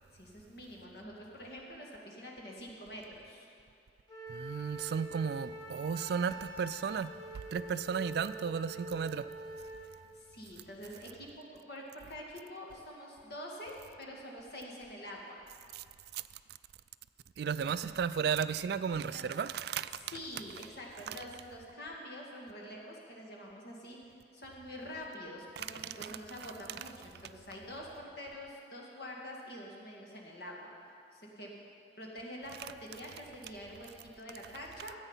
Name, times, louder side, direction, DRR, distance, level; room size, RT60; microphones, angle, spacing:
voice 1, 0.1-3.5 10.1-15.4 18.9-19.3 20.1-24.0 24.3-30.7 31.1-31.5 32.0-34.9, equal, 55° left, -2 dB, 2.0 m, -46 dB
Wind instrument woodwind instrument, 4.1-9.9, right 1 dB, 20° left, 2.1 m, -45 dB
voice 2, 4.3-7.1 7.5-9.3 15.7-15.8 16.1-16.2 17.4-20.0 25.6-26.2, right 7 dB, 55° right, 14 dB, 0.3 m, -34 dB
14.0 x 9.0 x 5.6 m, 2.4 s
head